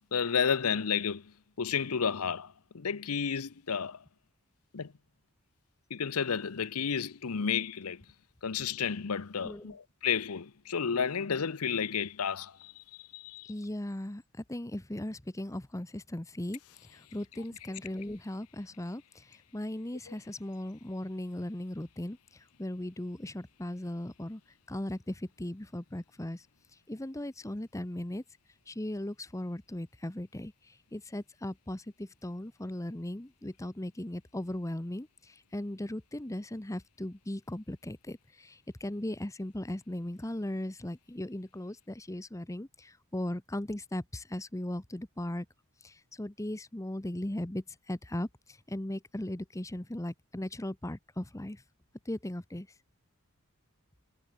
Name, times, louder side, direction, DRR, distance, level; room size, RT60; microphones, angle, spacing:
voice 1, 0.1-4.0 4.7-4.9 5.9-8.0 8.4-13.5 20.1-20.2, left 6 dB, 80° left, 0.8 m, -32 dB
voice 2, 9.4-9.8 13.5-16.6 16.9-24.4 24.7-26.5 26.9-28.2 28.7-45.5 45.8-51.6 52.0-52.7, left 1 dB, 15° left, 0.9 m, -38 dB
head